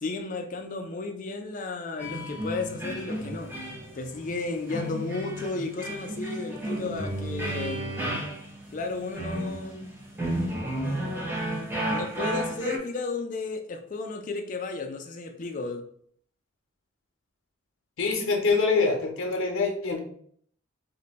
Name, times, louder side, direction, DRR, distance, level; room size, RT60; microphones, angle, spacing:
voice 1, 0.0-3.5 3.9-7.9 8.7-9.9 11.9-15.8, left 3 dB, 40° left, 5 dB, 0.4 m, -33 dB
sound 1, 2.0-12.8, right 1 dB, 10° right, 0.5 m, -33 dB
voice 2, 18.0-20.0, left 4 dB, 80° left, 2 dB, 0.6 m, -25 dB
2.5 x 2.2 x 3.9 m, 0.62 s
head